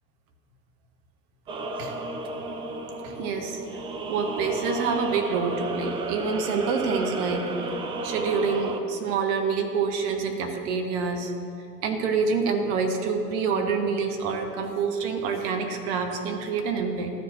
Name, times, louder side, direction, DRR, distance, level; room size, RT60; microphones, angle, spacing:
sound 1, 1.5-8.8, right 3 dB, 10° right, 0.4 m, -33 dB
voice 1, 3.0-3.6 4.1-7.5 8.0-11.3 11.8-17.1, right 5 dB, 45° right, 4 dB, 1.3 m, -27 dB
13.0 x 5.3 x 6.5 m, 2.5 s
figure-of-eight pair, 80°, 48 cm